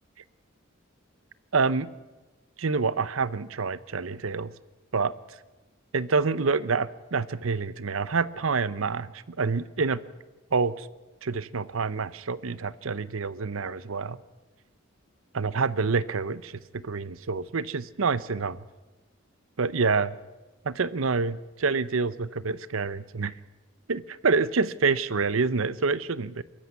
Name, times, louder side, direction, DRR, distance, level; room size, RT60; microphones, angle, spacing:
voice 1, 1.5-1.9 2.6-4.5 4.9-5.1 5.9-10.0 10.5-10.9 11.2-14.2 15.3-18.6 19.6-20.2 20.6-23.3 23.9-26.4, right 4 dB, 80° right, 18 dB, 0.7 m, -27 dB
22.5 x 14.0 x 9.4 m, 1.1 s
head